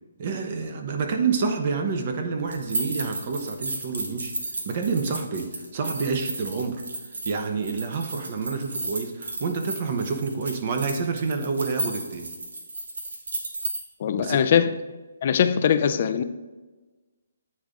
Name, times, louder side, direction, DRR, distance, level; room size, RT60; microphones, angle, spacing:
voice 1, 0.2-4.3 4.7-6.8 7.2-12.3 14.2-14.4, right 4 dB, 45° right, 5 dB, 0.9 m, -28 dB
sound 1, 2.5-13.8, right 2 dB, 75° right, 1.2 m, -33 dB
voice 2, 14.0-14.7 15.2-16.2, left 8 dB, 45° left, 11 dB, 0.3 m, -21 dB
8.6 x 3.8 x 3.6 m, 1.2 s
hypercardioid pair, 150°, 0 cm